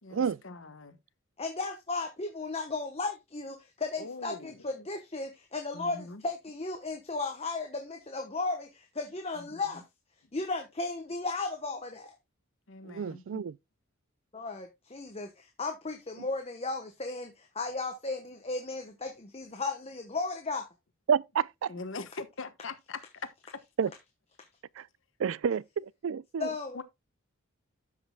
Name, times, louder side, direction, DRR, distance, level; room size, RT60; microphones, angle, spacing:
voice 1, 0.0-1.0 4.0-4.6 5.7-6.2 9.3-9.8 12.7-13.4 21.7-23.3 26.7-26.8, left 3 dB, 60° left, 1.2 m, -42 dB
voice 2, 1.4-9.8 10.3-12.1 14.3-20.7 26.4-26.8, left 3 dB, 30° left, 1.1 m, -35 dB
voice 3, 12.9-13.5 21.1-21.7 23.8-23.9 24.8-24.9 25.2-26.5, right 7 dB, 65° right, 0.3 m, -29 dB
13.0 x 6.2 x 2.2 m
head